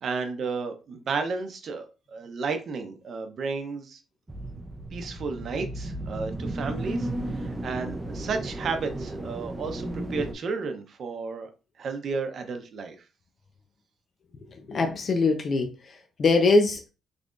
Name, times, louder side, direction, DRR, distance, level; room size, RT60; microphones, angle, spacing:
voice 1, 0.0-4.0 4.9-11.5 11.8-13.0, right 4 dB, 55° right, 0.8 m, -33 dB
sound 1, 4.3-10.3, right 1 dB, 20° right, 0.6 m, -34 dB
voice 2, 14.5-16.9, left 3 dB, 50° left, 0.6 m, -23 dB
3.8 x 3.3 x 2.5 m
cardioid pair, 90°, 0 cm